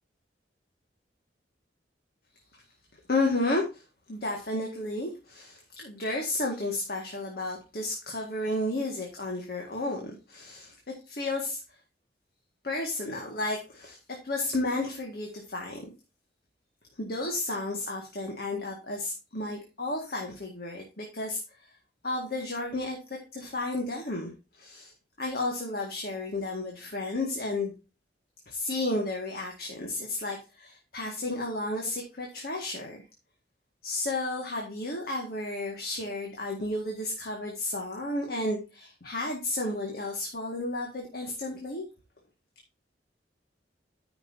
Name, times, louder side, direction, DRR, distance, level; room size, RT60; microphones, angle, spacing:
voice 1, 3.1-3.8 4.1-10.7 11.1-11.6 12.6-15.9 17.0-21.4 22.0-24.9 25.2-27.7 28.5-33.0 33.8-41.8, left 2 dB, 60° left, 0 dB, 1.8 m, -32 dB
13.0 x 5.9 x 2.7 m, 0.30 s
head